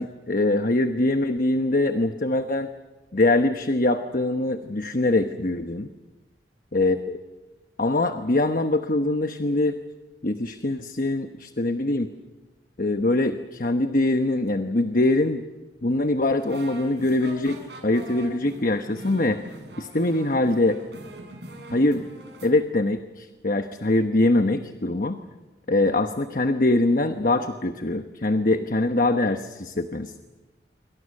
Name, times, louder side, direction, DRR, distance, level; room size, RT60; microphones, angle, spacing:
voice 1, 0.0-2.7 3.1-5.9 6.7-7.0 7.8-9.8 10.2-12.1 12.8-15.4 15.8-19.4 19.8-20.8 21.7-22.0 22.4-25.2 25.7-30.2, left 2 dB, 50° left, 7 dB, 1.1 m, -23 dB
sound 1, 16.4-22.5, right 1 dB, 70° right, 6.8 m, -43 dB
28.0 x 24.5 x 6.6 m, 1.2 s
head